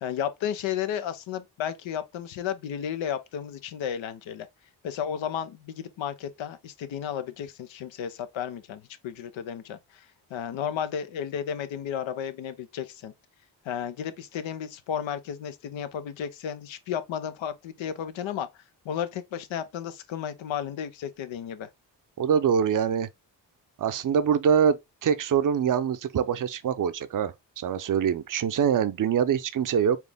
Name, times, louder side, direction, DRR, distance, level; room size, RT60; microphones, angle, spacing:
voice 1, 0.0-4.5 4.8-13.1 13.6-18.5 18.8-21.7, left 9 dB, 80° left, 0.8 m, -33 dB
voice 2, 22.2-23.1 23.8-30.0, right 8 dB, 45° right, 0.6 m, -24 dB
4.5 x 2.5 x 3.4 m
supercardioid pair, 45°, 46 cm